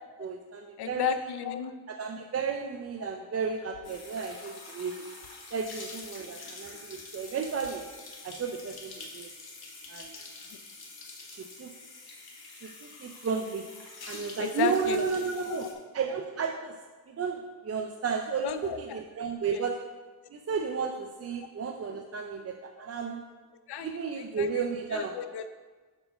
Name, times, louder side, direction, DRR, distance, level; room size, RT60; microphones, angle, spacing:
voice 1, 0.2-1.2 1.9-5.1 5.5-7.8 8.2-9.3 9.9-10.1 11.3-11.7 12.6-13.7 14.1-15.7 15.9-16.7 17.1-19.8 20.3-23.3 23.8-25.1, right 5 dB, 40° right, 3 dB, 0.5 m, -33 dB
voice 2, 0.8-1.7 14.4-15.0 15.5-15.7 18.4-19.0 19.5-19.6 23.7-24.5 24.9-25.5, left 7 dB, 90° left, 10 dB, 0.7 m, -33 dB
sound 1, 3.8-15.7, left 3 dB, 75° left, 1.6 m, -46 dB
7.7 x 4.7 x 5.5 m, 1.3 s
wide cardioid pair, 135°, 38 cm